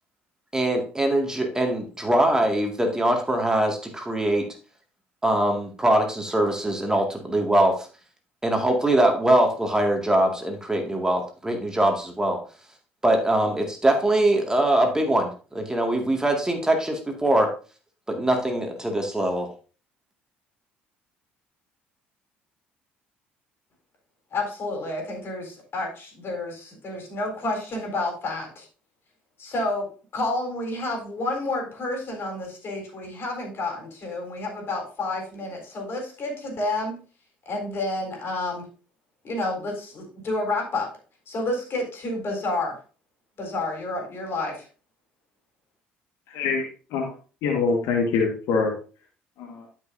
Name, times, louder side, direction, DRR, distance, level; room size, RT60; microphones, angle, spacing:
voice 1, 0.5-4.5 5.2-7.9 8.4-12.4 13.0-17.5 18.1-19.5, right 1 dB, 10° right, 3 dB, 2.0 m, -22 dB
voice 2, 24.3-28.7 29.4-29.9 30.1-37.0 37.5-38.7 39.2-40.9 41.3-42.8 43.4-44.7, left 2 dB, 45° left, 2 dB, 3.9 m, -30 dB
voice 3, 46.3-46.6 46.9-47.1 47.4-48.7 49.4-49.6, left 4 dB, 65° left, 2 dB, 1.6 m, -24 dB
12.5 x 5.5 x 2.7 m, 0.36 s
hypercardioid pair, 55°, 5 cm